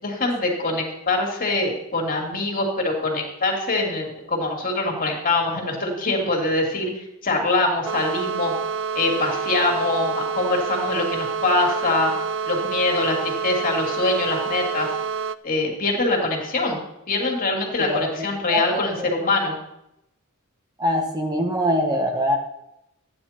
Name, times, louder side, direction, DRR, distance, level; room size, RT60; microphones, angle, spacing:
voice 1, 0.0-6.9 7.2-8.5 8.9-12.1 12.5-14.9 15.4-16.8 17.1-19.6, left 2 dB, 40° left, 1 dB, 2.9 m, -23 dB
sound 1, 7.8-15.4, right 6 dB, 60° right, 0.5 m, -28 dB
voice 2, 17.8-18.6 20.8-22.4, equal, 20° right, 2 dB, 1.3 m, -23 dB
14.0 x 9.9 x 4.5 m, 0.84 s
head